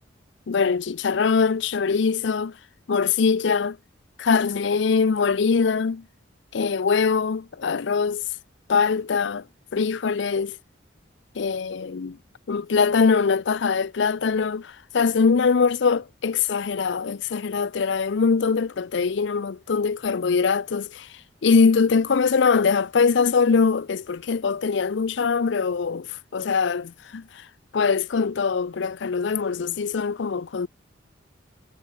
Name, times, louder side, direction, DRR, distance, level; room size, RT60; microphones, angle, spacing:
voice 1, 0.5-2.6 2.9-3.8 4.2-6.0 6.5-8.2 8.7-9.4 9.7-10.6 11.4-12.2 12.5-21.1 21.4-27.5 27.7-30.7, left 5 dB, 65° left, 0.5 m, -22 dB
head